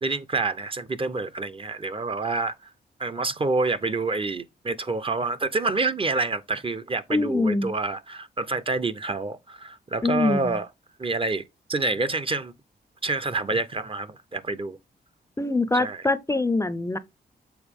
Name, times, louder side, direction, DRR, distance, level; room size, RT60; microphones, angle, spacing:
voice 1, 0.0-2.7 3.0-10.7 11.0-11.4 11.7-12.5 13.0-14.8 15.7-16.0, right 3 dB, 30° right, 0.7 m, -27 dB
voice 2, 7.1-7.7 10.0-10.6 15.4-17.0, left 2 dB, 15° left, 0.5 m, -24 dB
7.0 x 4.1 x 3.5 m
cardioid pair, 95°, 18 cm